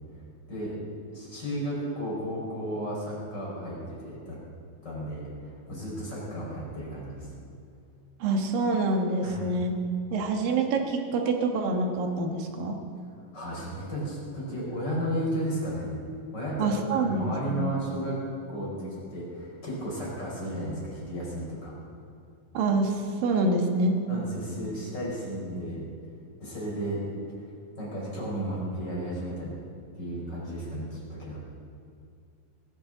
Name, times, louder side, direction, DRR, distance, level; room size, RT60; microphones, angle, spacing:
voice 1, 1.1-4.4 4.8-7.3 9.2-9.4 13.3-15.9 16.3-18.2 18.5-21.7 24.1-25.9 26.4-27.0 27.8-29.6 29.9-31.4, equal, 20° left, -5 dB, 5.2 m, -33 dB
voice 2, 8.2-9.7 10.1-12.8 16.6-17.7 22.5-24.0, right 2 dB, 65° right, 3 dB, 2.3 m, -26 dB
22.0 x 15.0 x 3.9 m, 2.3 s
omnidirectional pair, 5.9 m